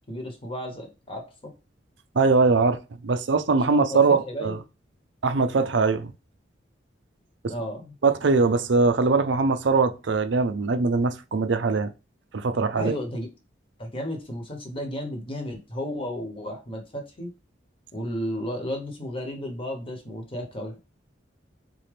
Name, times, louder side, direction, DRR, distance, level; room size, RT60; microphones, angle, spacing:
voice 1, 0.1-1.5 3.7-4.0 4.3-4.6 7.5-7.9 12.8-13.3 13.8-17.3 17.9-20.8, equal, 30° left, 1.1 m, -33 dB
voice 2, 2.1-4.6 5.2-6.1 7.4-7.5 8.0-11.9 12.3-13.0, right 4 dB, 70° right, 0.5 m, -22 dB
4.2 x 3.7 x 3.4 m
head